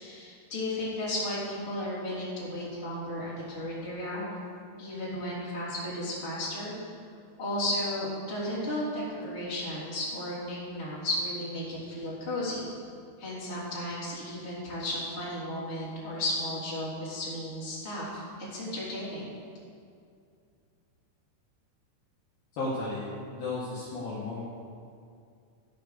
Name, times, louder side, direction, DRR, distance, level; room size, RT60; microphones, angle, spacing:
voice 1, 0.0-4.4 4.8-6.7 7.4-12.7 13.2-18.2 18.5-19.3, left 1 dB, 15° left, -8 dB, 2.7 m, -34 dB
voice 2, 22.5-24.4, left 2 dB, 60° left, -8 dB, 2.9 m, -34 dB
13.5 x 6.0 x 6.7 m, 2.4 s
omnidirectional pair, 5.5 m